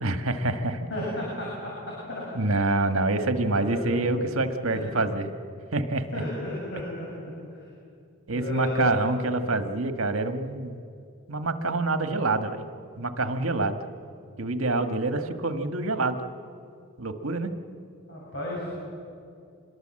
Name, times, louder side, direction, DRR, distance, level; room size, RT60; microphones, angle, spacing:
voice 1, 0.0-0.9 2.3-5.3 5.7-6.2 8.3-10.8 11.3-12.6 13.0-13.8 14.4-16.2 17.0-17.5, right 2 dB, 75° right, 8 dB, 1.6 m, -26 dB
voice 2, 0.9-2.6 3.5-4.1 4.7-4.9 6.1-7.1 7.5-7.7 8.3-9.1 18.1-18.7, left 1 dB, 60° left, -5 dB, 7.4 m, -34 dB
25.5 x 21.5 x 7.7 m, 2.4 s
head